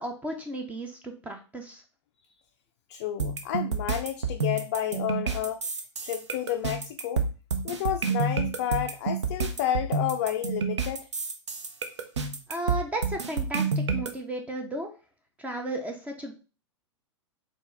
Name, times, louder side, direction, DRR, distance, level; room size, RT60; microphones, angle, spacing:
voice 1, 0.0-1.8 12.5-14.9 15.4-16.3, right 1 dB, 10° right, 3 dB, 0.6 m, -34 dB
voice 2, 2.9-5.6 6.0-7.3 7.6-11.1, left 11 dB, 40° left, 5 dB, 0.4 m, -31 dB
sound 1, 3.2-14.1, right 4 dB, 70° right, 0.7 m, -29 dB
4.3 x 3.0 x 3.3 m, 0.34 s
figure-of-eight pair, 100°, 16 cm